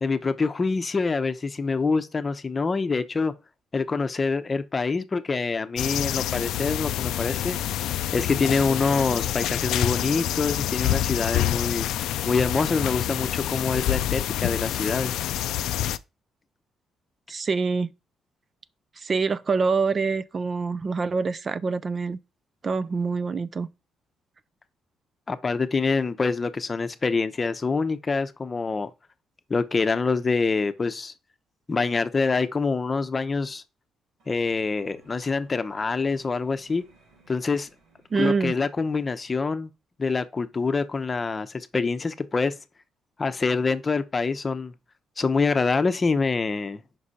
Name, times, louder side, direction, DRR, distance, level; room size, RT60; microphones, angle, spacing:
voice 1, 0.0-3.3 3.7-7.6 8.1-11.9 12.3-15.1 25.3-28.9 29.5-31.1 31.7-33.6 34.3-36.8 37.3-37.7 38.2-39.7 40.0-42.5 43.2-44.7 45.2-46.8, left 4 dB, 30° left, 0.7 m, -25 dB
sound 1, 5.8-16.0, left 12 dB, 85° left, 0.4 m, -27 dB
voice 2, 17.3-17.9 19.0-22.2 22.6-23.7 38.1-38.5, right 4 dB, 40° right, 0.4 m, -25 dB
sound 2, 34.2-38.8, right 3 dB, 80° right, 2.4 m, -58 dB
5.4 x 4.9 x 4.2 m
cardioid pair, 90°, 0 cm